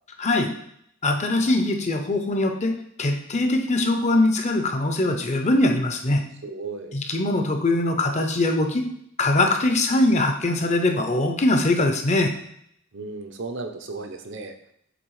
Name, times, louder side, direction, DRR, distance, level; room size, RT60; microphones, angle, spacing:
voice 1, 0.2-0.5 1.0-6.2 6.9-8.8 9.2-12.3, left 2 dB, 35° left, 5 dB, 0.7 m, -22 dB
voice 2, 6.4-7.0 12.9-14.5, right 3 dB, 65° right, 5 dB, 0.8 m, -34 dB
7.9 x 3.5 x 4.8 m, 0.71 s
head